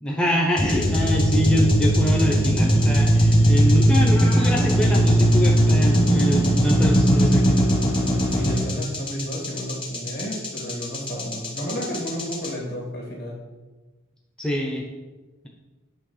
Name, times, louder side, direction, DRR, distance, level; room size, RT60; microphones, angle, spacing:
voice 1, 0.0-7.7 14.4-14.9, equal, 5° left, -1 dB, 0.5 m, -25 dB
sound 1, 0.6-12.5, equal, 25° left, 1.1 m, -19 dB
Meow, 3.9-4.7, left 2 dB, 70° left, 2.3 m, -37 dB
voice 2, 8.3-13.4, equal, 50° left, -2 dB, 1.9 m, -32 dB
8.0 x 3.3 x 5.5 m, 1.2 s
head